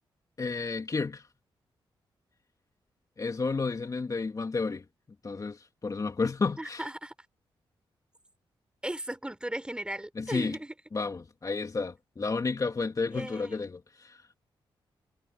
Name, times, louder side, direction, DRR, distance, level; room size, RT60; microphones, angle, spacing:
voice 1, 0.4-1.2 3.2-4.8 5.2-6.9 10.2-10.6 10.9-14.2, left 4 dB, 40° left, 2.4 m, -31 dB
voice 2, 6.6-7.1 8.8-10.7 13.1-13.6, right 1 dB, 10° right, 4.3 m, -37 dB
cardioid pair, 75°, 9 cm